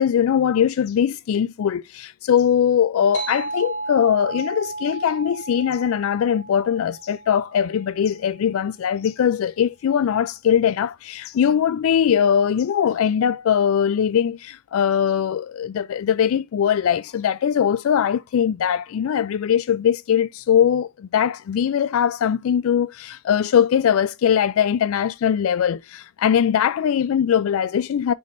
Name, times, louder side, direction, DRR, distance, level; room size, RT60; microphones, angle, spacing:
voice 1, 0.0-28.1, left 8 dB, 80° left, 0.3 m, -21 dB
sound 1, 3.1-8.1, right 2 dB, 60° left, 2.8 m, -33 dB
10.5 x 3.5 x 2.5 m
head